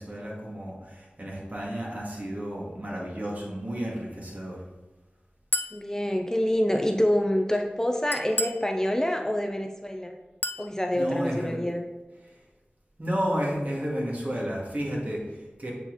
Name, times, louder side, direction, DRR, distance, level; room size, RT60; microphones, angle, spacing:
voice 1, 0.0-4.6 10.9-11.6 13.0-15.7, equal, 45° right, -4 dB, 2.2 m, -32 dB
Chink clink, 5.5-5.8 8.1-8.7 10.4-10.7, left 2 dB, 65° left, 0.4 m, -30 dB
voice 2, 5.7-10.2 10.6-11.8, equal, 15° left, 4 dB, 0.6 m, -26 dB
8.2 x 4.3 x 4.1 m, 1.1 s
wide cardioid pair, 40°, 4 cm